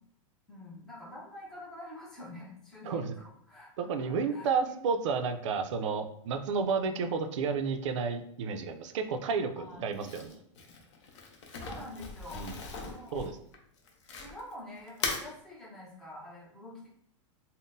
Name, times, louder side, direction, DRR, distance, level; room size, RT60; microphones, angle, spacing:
voice 1, 0.5-4.8 5.8-5.9 9.6-9.9 11.5-12.5 12.8-13.3 14.2-16.9, left 1 dB, ahead, -8 dB, 0.6 m, -46 dB
voice 2, 3.8-10.4 12.3-12.6 13.1-13.3, right 5 dB, 65° right, 7 dB, 0.4 m, -31 dB
Crumpling crinkling, 9.9-14.5 14.9-15.3, left 4 dB, 60° left, 0.6 m, -39 dB
3.6 x 2.0 x 2.5 m, 0.69 s
supercardioid pair, 175°, 17 cm